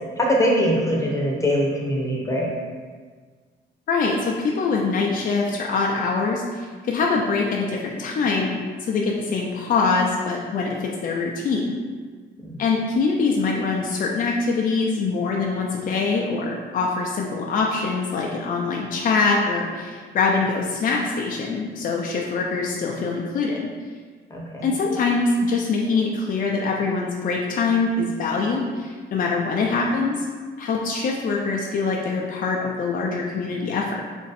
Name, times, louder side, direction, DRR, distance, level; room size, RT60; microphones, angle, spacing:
voice 1, 0.2-2.5 24.3-24.7, equal, 15° left, -2 dB, 0.8 m, -22 dB
voice 2, 3.9-11.8 12.6-23.7 24.6-30.3 30.6-34.0, left 4 dB, 45° left, -1 dB, 0.4 m, -24 dB
3.0 x 2.5 x 4.0 m, 1.5 s
cardioid pair, 90°, 20 cm